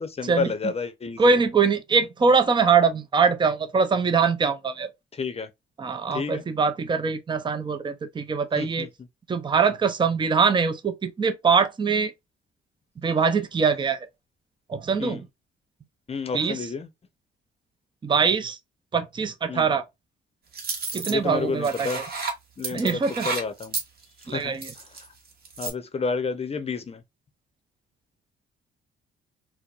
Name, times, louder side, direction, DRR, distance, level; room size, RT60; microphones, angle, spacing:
voice 1, 0.0-1.4 5.2-5.5 6.1-6.4 8.6-8.9 15.0-15.2 16.1-16.9 19.5-19.7 21.1-22.0 22.6-23.8 24.3-24.5 25.6-27.0, left 4 dB, 30° left, 0.7 m, -30 dB
voice 2, 1.2-4.9 5.8-8.9 9.3-12.1 13.0-14.1 14.7-15.3 16.3-16.7 18.0-18.6 18.9-19.8 20.9-22.0 22.7-23.3 24.3-24.7, right 5 dB, 25° right, 0.5 m, -23 dB
sound 1, 20.5-21.1 21.6-22.3 22.6-25.1 25.4-25.7, right 4 dB, 50° right, 1.3 m, -31 dB
4.5 x 2.1 x 2.4 m
cardioid pair, 90°, 20 cm